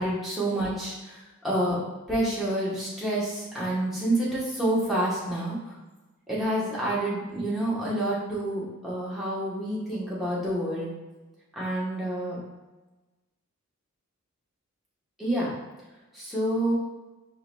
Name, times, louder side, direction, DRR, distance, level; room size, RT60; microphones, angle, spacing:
voice 1, 0.0-1.8 2.1-5.7 6.3-10.9 11.6-12.4 15.2-15.5 16.1-16.7, right 1 dB, ahead, -9 dB, 0.9 m, -28 dB
4.6 x 3.0 x 2.2 m, 1.1 s
head